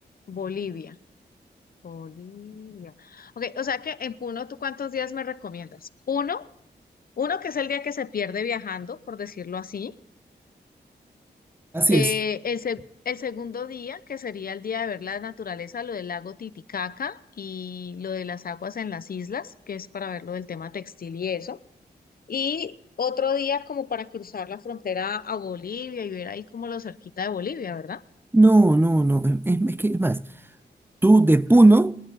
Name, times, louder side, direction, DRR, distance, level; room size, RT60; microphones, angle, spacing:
voice 1, 0.3-1.0 1.8-6.5 7.2-9.9 11.9-21.6 22.3-28.0, left 6 dB, 55° left, 0.7 m, -31 dB
voice 2, 11.7-12.1 28.3-30.2 31.0-32.0, right 2 dB, 10° right, 0.5 m, -17 dB
29.5 x 10.5 x 4.1 m
cardioid pair, 60°, 18 cm